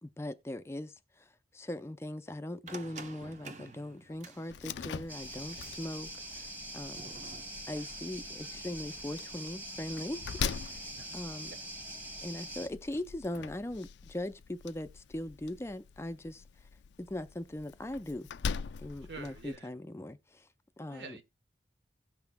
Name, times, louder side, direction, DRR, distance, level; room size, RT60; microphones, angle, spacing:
voice 1, 0.0-7.1 7.7-10.2 10.7-10.9 11.1-11.5 12.2-16.4 17.0-18.3 18.8-20.5 20.8-21.2, left 1 dB, 15° left, 0.4 m, -40 dB
sound 1, 2.7-10.8, right 3 dB, 45° right, 0.8 m, -53 dB
Slam, 4.5-19.6, left 6 dB, 85° left, 0.4 m, -43 dB
sound 2, 5.1-12.7, right 1 dB, 10° right, 1.4 m, -44 dB
voice 2, 19.1-19.7 20.9-21.2, right 3 dB, 75° right, 1.1 m, -46 dB
17.0 x 5.8 x 2.2 m
head